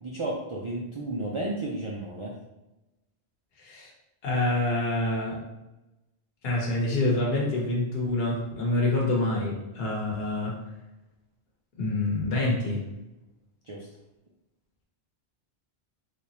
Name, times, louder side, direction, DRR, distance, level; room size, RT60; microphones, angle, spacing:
voice 1, 0.0-2.4 13.7-13.9, right 2 dB, 50° right, -3 dB, 0.3 m, -33 dB
voice 2, 3.6-3.9 4.2-5.4 6.4-10.5 11.8-12.8, left 2 dB, 65° left, -3 dB, 1.1 m, -26 dB
3.4 x 2.7 x 2.9 m, 0.97 s
omnidirectional pair, 1.1 m